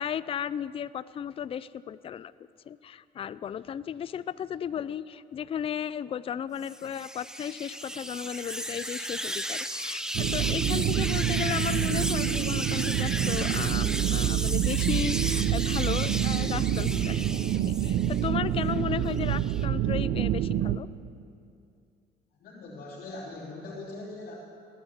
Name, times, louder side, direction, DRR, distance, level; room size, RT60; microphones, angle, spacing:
voice 1, 0.0-2.3 2.7-17.3 17.7-20.9, left 9 dB, 35° left, 17 dB, 0.4 m, -35 dB
sound 1, 6.6-18.3 18.7-19.7, right 1 dB, 5° right, 0.7 m, -35 dB
sound 2, 10.1-20.8, right 11 dB, 65° right, 0.7 m, -27 dB
voice 2, 22.3-24.4, left 2 dB, 65° left, -7 dB, 3.4 m, -41 dB
18.0 x 11.0 x 7.1 m, 2.5 s
cardioid pair, 110°, 17 cm